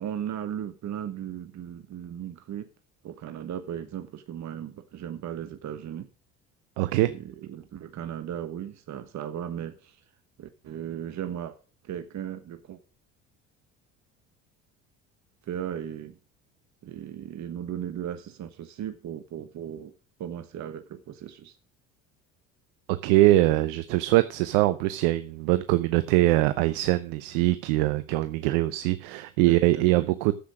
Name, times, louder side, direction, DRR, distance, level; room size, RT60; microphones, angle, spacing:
voice 1, 0.0-2.7 3.0-6.1 6.9-10.0 10.4-11.6 11.8-12.8 15.4-16.2 16.8-19.9 20.2-21.5 29.5-30.1, right 10 dB, 50° right, 1.3 m, -36 dB
voice 2, 6.8-7.1 23.0-30.3, right 17 dB, 75° right, 0.8 m, -22 dB
10.0 x 7.6 x 6.3 m
hypercardioid pair, 70°, 36 cm